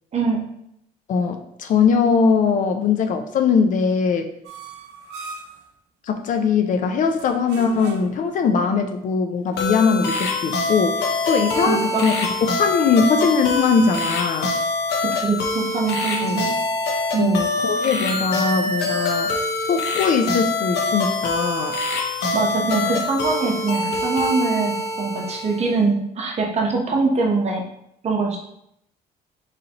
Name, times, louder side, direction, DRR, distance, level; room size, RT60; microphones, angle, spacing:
voice 1, 0.1-0.4 11.7-12.1 15.0-16.5 17.1-17.4 22.3-27.6 28.0-28.4, right 4 dB, 40° right, 0 dB, 0.9 m, -23 dB
voice 2, 1.1-4.3 6.1-11.0 11.3-12.3 12.6-14.5 16.2-16.4 17.2-19.3 19.7-21.7, left 5 dB, 50° left, 6 dB, 0.5 m, -20 dB
sound 1, 4.4-5.6 7.1-8.3, right 4 dB, 85° right, 0.6 m, -38 dB
sound 2, 9.6-25.7, left 3 dB, 80° left, 0.8 m, -24 dB
3.8 x 3.2 x 2.9 m, 0.76 s
cardioid pair, 110°, 17 cm